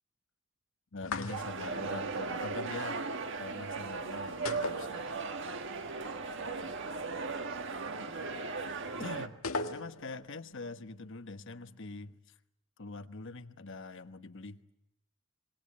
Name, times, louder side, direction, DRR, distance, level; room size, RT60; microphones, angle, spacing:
voice 1, 0.9-3.0 3.4-5.2 9.0-9.3 9.7-12.2 12.8-14.6, left 3 dB, 65° left, 10 dB, 1.2 m, -43 dB
sound 1, 1.0-1.8 4.5-5.5 5.8-5.9 9.4-10.2, left 3 dB, 90° left, 1.8 m, -37 dB
sound 2, 1.3-9.3, right 4 dB, 60° right, 1.6 m, -37 dB
26.0 x 21.0 x 8.6 m, 0.80 s
head